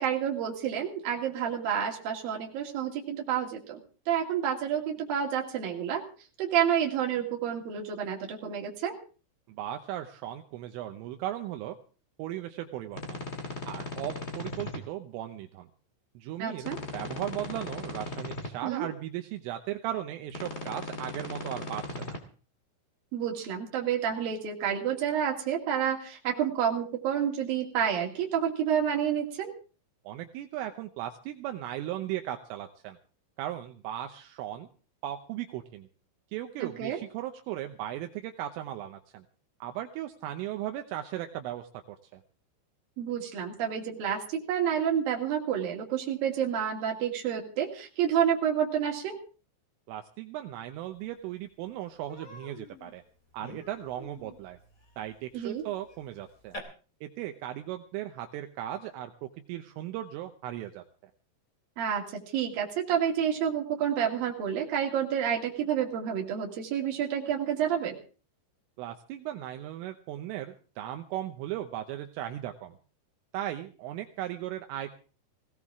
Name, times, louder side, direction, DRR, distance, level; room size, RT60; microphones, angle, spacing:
voice 1, 0.0-3.8 4.1-6.1 6.4-8.9 16.4-16.8 18.6-18.9 23.1-29.5 36.6-37.0 43.0-49.2 55.3-55.6 61.8-67.9, right 9 dB, 50° right, 0 dB, 3.8 m, -29 dB
voice 2, 9.5-11.8 12.2-13.2 13.7-15.7 16.2-22.2 30.0-33.0 33.4-34.7 35.0-35.9 36.3-39.2 39.6-42.2 49.9-53.0 53.3-54.6 55.0-56.6 57.0-61.1 68.8-72.8 73.3-75.0, right 12 dB, 80° right, 5 dB, 3.4 m, -37 dB
sound 1, 12.9-14.8 16.6-18.5 20.3-22.2, left 2 dB, 50° left, 0.8 m, -38 dB
Human voice, 51.1-51.2 51.5-51.7 52.1-56.6, left 2 dB, 20° left, 2.3 m, -48 dB
19.0 x 17.5 x 3.6 m, 0.38 s
omnidirectional pair, 5.9 m